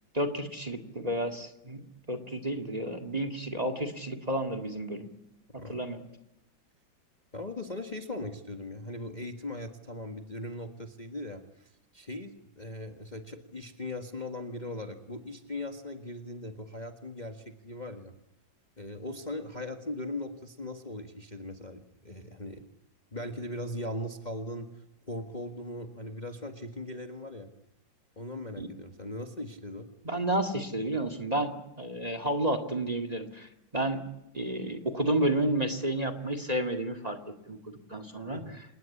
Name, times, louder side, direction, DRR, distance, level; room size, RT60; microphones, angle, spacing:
voice 1, 0.1-1.8 2.1-5.1 5.7-6.0 28.6-28.7 30.0-31.5 31.8-34.0 34.3-37.2 37.5-38.4, right 1 dB, 20° right, 10 dB, 2.0 m, -31 dB
voice 2, 7.3-18.1 18.8-22.6 23.1-27.5 28.2-29.9 38.3-38.6, left 1 dB, 25° left, 5 dB, 1.6 m, -39 dB
28.0 x 19.0 x 8.5 m, 0.89 s
omnidirectional pair, 2.1 m